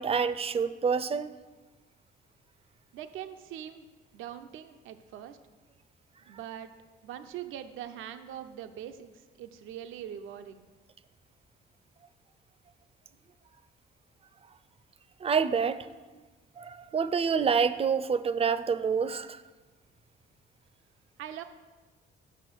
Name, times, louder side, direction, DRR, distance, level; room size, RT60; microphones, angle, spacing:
voice 1, 0.0-1.3 15.2-15.9 16.6-19.4, right 6 dB, 30° right, 14 dB, 0.4 m, -27 dB
voice 2, 2.9-3.9 4.1-5.4 6.3-6.7 7.0-10.7 21.2-21.4, right 10 dB, 85° right, 8 dB, 0.5 m, -42 dB
6.9 x 6.2 x 6.1 m, 1.3 s
cardioid pair, 90°, 20 cm